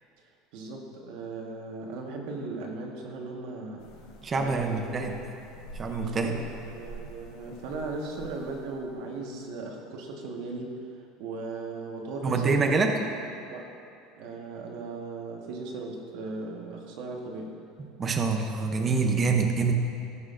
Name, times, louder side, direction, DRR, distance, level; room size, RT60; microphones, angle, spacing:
voice 1, 0.5-3.9 4.3-5.1 6.0-6.4 6.6-10.7 11.2-13.1 13.5-13.6 14.2-17.6, right 3 dB, 65° right, 1 dB, 1.4 m, -37 dB
sound 1, 3.8-9.1, right 2 dB, 80° left, 1.1 m, -46 dB
voice 2, 4.2-5.2 5.7-6.3 12.2-13.0 17.8-19.7, right 4 dB, 20° right, 3 dB, 0.6 m, -26 dB
17.5 x 6.3 x 2.6 m, 2.6 s
cardioid pair, 160°, 0 cm